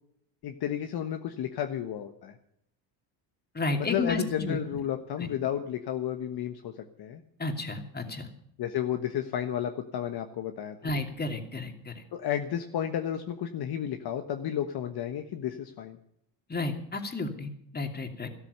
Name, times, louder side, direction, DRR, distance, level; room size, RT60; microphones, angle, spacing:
voice 1, 0.4-2.3 3.8-6.7 7.0-7.2 8.6-10.9 12.1-16.0, left 10 dB, 50° left, 6 dB, 1.4 m, -32 dB
voice 2, 3.5-4.6 5.2-5.3 7.4-8.3 10.8-12.0 16.5-18.3, left 2 dB, 20° left, 5 dB, 2.8 m, -32 dB
13.0 x 13.0 x 6.7 m, 0.73 s
supercardioid pair, 90°, 48 cm